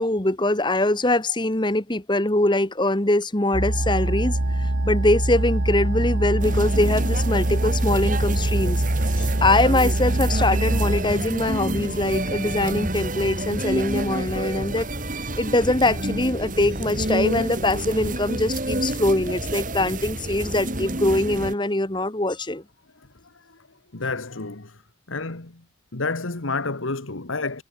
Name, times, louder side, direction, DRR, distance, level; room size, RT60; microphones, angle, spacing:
voice 1, 0.0-14.9 15.4-22.6, left 1 dB, 25° left, 1.4 m, -23 dB
sound 1, 3.5-11.0, right 1 dB, 80° right, 1.8 m, -23 dB
sound 2, 6.4-21.5, right 1 dB, 40° right, 6.1 m, -29 dB
voice 2, 23.9-24.8 25.1-25.6 25.9-27.6, left 3 dB, 85° left, 1.8 m, -30 dB
head